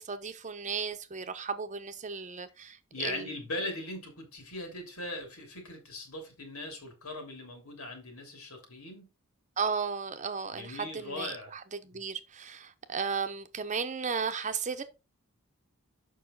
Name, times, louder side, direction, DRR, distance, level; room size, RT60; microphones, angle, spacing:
voice 1, 0.0-3.3 9.6-14.8, right 5 dB, 35° right, 0.8 m, -35 dB
voice 2, 2.9-9.1 10.5-11.5, left 2 dB, 85° left, 3.1 m, -39 dB
7.2 x 5.6 x 3.9 m
head